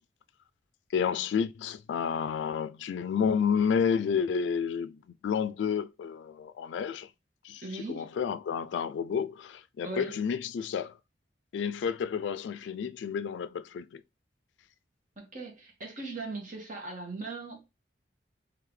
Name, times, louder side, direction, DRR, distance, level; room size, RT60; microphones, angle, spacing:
voice 1, 0.9-7.1 7.4-11.0 11.5-14.0, left 7 dB, 85° left, 0.3 m, -30 dB
voice 2, 7.6-8.1 9.8-10.1 15.2-17.6, right 3 dB, 50° right, 1.4 m, -39 dB
3.8 x 3.3 x 3.1 m
head